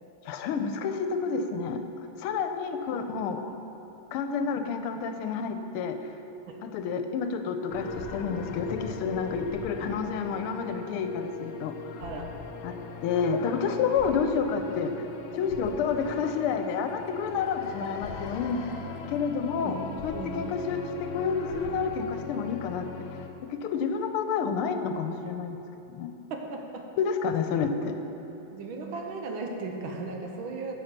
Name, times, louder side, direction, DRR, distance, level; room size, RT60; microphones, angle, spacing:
voice 1, 0.2-3.5 4.1-6.0 6.6-11.7 12.6-12.7 13.0-14.9 15.3-18.6 19.1-22.9 23.5-25.6 25.9-26.1 27.0-27.9, left 5 dB, 90° left, 7 dB, 1.6 m, -29 dB
sound 1, 7.7-23.3, left 5 dB, 75° left, 1.5 m, -40 dB
voice 2, 19.6-20.5 26.3-26.9 28.5-30.7, right 3 dB, 70° right, 2 dB, 1.6 m, -36 dB
10.5 x 5.6 x 6.6 m, 3.0 s
omnidirectional pair, 2.4 m